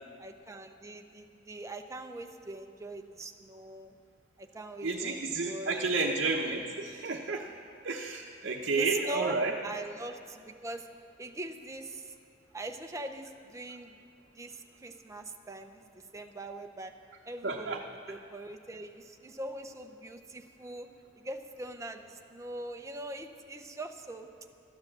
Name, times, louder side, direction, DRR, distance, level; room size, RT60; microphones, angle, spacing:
voice 1, 0.2-3.9 4.4-6.2 8.7-10.9 11.2-12.1 12.5-14.0 14.4-16.9 17.3-20.9 21.2-24.3, right 2 dB, 15° right, 5 dB, 0.7 m, -42 dB
voice 2, 4.8-7.4 7.8-9.5 17.4-17.8, right 3 dB, 60° right, -1 dB, 0.9 m, -31 dB
13.0 x 10.5 x 7.4 m, 2.6 s
head